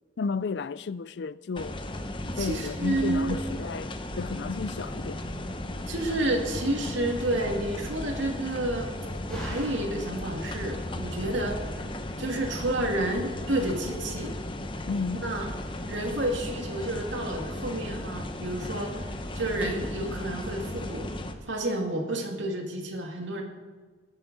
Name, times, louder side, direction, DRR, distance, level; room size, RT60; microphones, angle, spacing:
voice 1, 0.2-1.8 2.4-3.9 4.2-5.2 14.9-15.2, left 4 dB, 65° left, 0.4 m, -32 dB
sound 1, 1.6-21.3, left 1 dB, 25° left, 0.9 m, -36 dB
voice 2, 2.4-3.4 5.9-8.9 9.3-11.9 12.2-14.3 15.2-15.5 15.9-19.1 19.3-21.1 21.5-23.4, right 1 dB, 85° right, 2.3 m, -30 dB
Slam, 4.4-11.5, equal, 5° left, 3.2 m, -48 dB
20.5 x 8.1 x 5.3 m
head